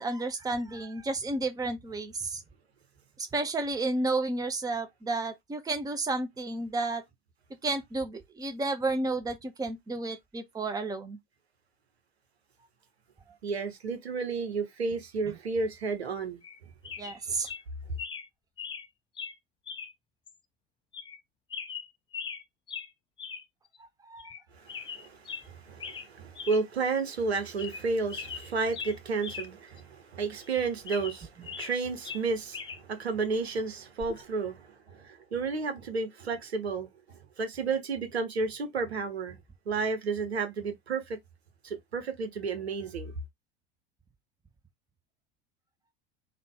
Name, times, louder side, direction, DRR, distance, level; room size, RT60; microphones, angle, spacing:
voice 1, 0.0-2.4 3.3-7.0 7.6-11.2 17.0-17.5 24.1-24.3, right 2 dB, 10° right, 0.8 m, -31 dB
voice 2, 13.4-16.7 17.1-17.4 24.5-39.4 39.7-41.2 41.6-43.2, right 4 dB, 80° right, 1.1 m, -32 dB
sound 1, 16.4-16.6 16.8-17.2 17.4-17.6 18.0-18.3 18.6-18.9 19.2-19.3 19.7-19.9 20.3-20.4 20.9-21.2 21.5-22.4 22.7-22.9 23.2-23.4 23.7-23.8 24.2-24.4 24.7-25.5 25.8-26.1 26.3-26.6 27.0-27.1 27.5-27.8 28.1-29.5 29.8-29.9 30.4-31.8 32.0-32.8 34.0-34.2, left 6 dB, 15° left, 0.4 m, -40 dB
3.8 x 2.4 x 3.6 m
figure-of-eight pair, 75°, 32 cm